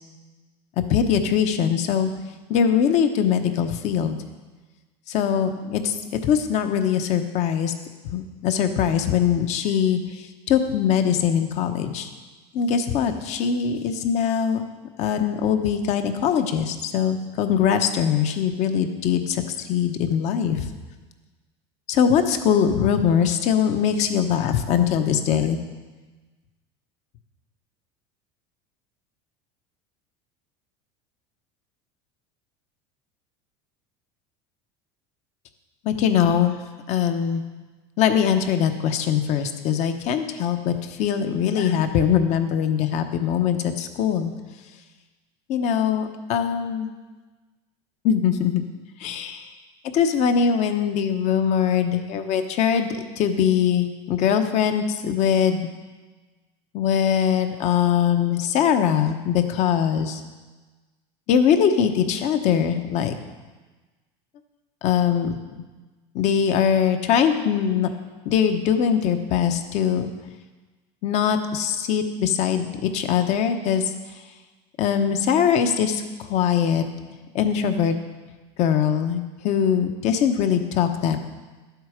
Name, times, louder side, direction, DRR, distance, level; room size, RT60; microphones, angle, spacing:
voice 1, 0.9-2.1 2.5-4.2 5.1-7.7 8.1-12.1 12.5-14.6 15.0-20.7 21.9-25.6 35.8-36.6 36.9-37.4 38.0-44.3 45.5-46.9 48.0-48.6 49.0-49.5 49.9-55.6 56.7-60.2 61.3-63.1 64.8-65.4 66.1-67.9 68.2-70.1 71.0-73.9 74.8-76.8 77.3-77.9 78.6-81.2, left 8 dB, 50° left, 7 dB, 1.0 m, -22 dB
12.0 x 7.9 x 5.1 m, 1.3 s
supercardioid pair, 135°, 15 cm